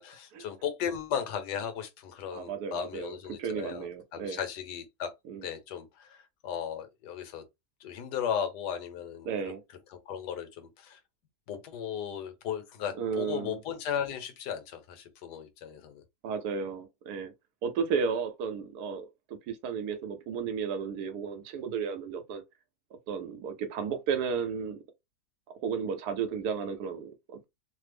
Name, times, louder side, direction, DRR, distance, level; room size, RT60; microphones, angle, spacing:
voice 1, 0.0-5.1 5.4-7.4 7.8-9.3 9.9-11.0 11.5-16.0, left 8 dB, 90° left, 1.3 m, -36 dB
voice 2, 2.3-4.4 5.3-5.5 9.2-9.6 13.0-13.6 16.2-17.3 17.6-22.4 23.1-24.8 25.6-27.5, right 6 dB, 75° right, 1.2 m, -33 dB
3.1 x 2.0 x 3.3 m
omnidirectional pair, 1.7 m